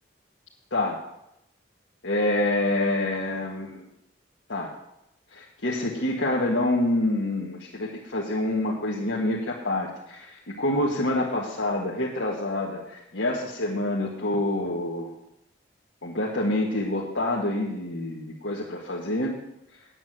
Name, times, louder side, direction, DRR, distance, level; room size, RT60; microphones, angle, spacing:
voice 1, 2.0-3.9 4.5-4.7 5.3-15.1 16.0-19.4, left 1 dB, 80° left, -4 dB, 1.8 m, -27 dB
9.6 x 8.9 x 7.6 m, 0.83 s
head